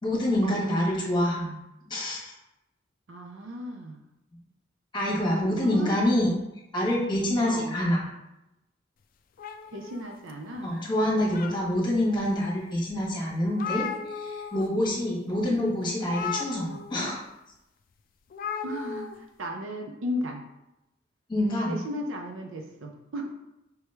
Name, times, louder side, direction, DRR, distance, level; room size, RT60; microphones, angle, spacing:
voice 1, 0.0-1.5 1.9-2.3 4.9-6.3 6.7-8.0 10.6-17.1 21.3-21.8, left 1 dB, 25° left, -3 dB, 1.2 m, -26 dB
voice 2, 3.1-4.0 5.4-6.0 7.5-7.8 9.7-10.7 15.3-15.5 18.6-20.4 21.7-23.3, equal, 85° right, 3 dB, 0.5 m, -35 dB
sound 1, 9.4-10.6 11.1-12.0 12.6-12.7 13.0-13.1 13.3-14.7 14.9-15.2 16.0-17.1 18.3-19.1, left 6 dB, 45° left, 0.3 m, -36 dB
4.6 x 3.1 x 3.3 m, 0.90 s
head